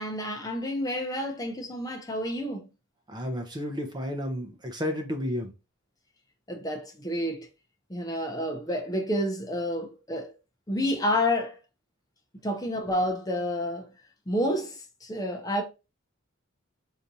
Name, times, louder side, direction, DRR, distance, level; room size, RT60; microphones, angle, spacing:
voice 1, 0.0-2.7 6.5-7.5 7.9-10.3 10.7-11.6 12.4-13.9 14.3-15.6, left 1 dB, 15° left, 0.6 m, -29 dB
voice 2, 3.1-5.5, equal, 20° right, 0.7 m, -32 dB
4.8 x 2.7 x 2.7 m
head